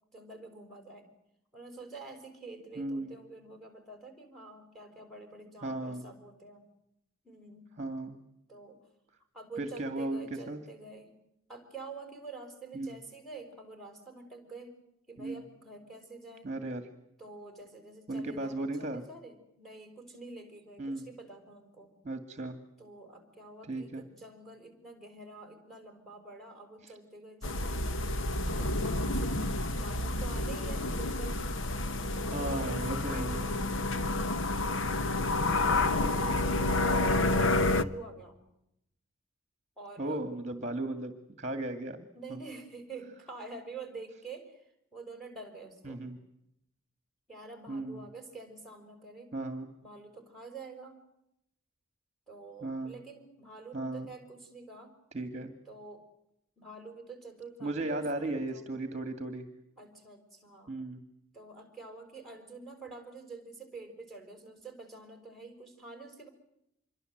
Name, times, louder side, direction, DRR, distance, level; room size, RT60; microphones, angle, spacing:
voice 1, 0.1-1.1 1.5-6.7 7.2-7.7 8.5-8.9 9.3-11.1 11.5-14.8 15.1-16.5 17.2-21.9 22.8-28.0 28.5-29.5 29.7-31.6 32.1-33.6 34.0-34.4 34.9-38.4 39.8-40.2 42.1-46.1 47.3-49.3 49.8-51.0 52.3-55.0 55.7-56.0 56.6-58.7 59.8-60.8 61.3-66.3, right 3 dB, ahead, 4 dB, 5.7 m, -47 dB
voice 2, 2.8-3.2 5.6-6.1 7.8-8.2 9.6-10.6 12.7-12.9 15.2-15.4 16.4-16.9 18.1-19.0 20.8-21.0 22.0-22.6 23.7-24.0 26.8-26.9 32.3-33.5 40.0-41.1 41.4-42.4 45.8-46.2 47.7-48.1 49.3-49.7 52.6-52.9 53.7-54.1 55.1-55.5 57.6-59.5 60.7-61.0, right 2 dB, 30° right, 8 dB, 2.0 m, -36 dB
sound 1, 27.4-37.8, left 2 dB, 60° left, 1.1 m, -29 dB
26.5 x 23.5 x 7.9 m, 0.82 s
head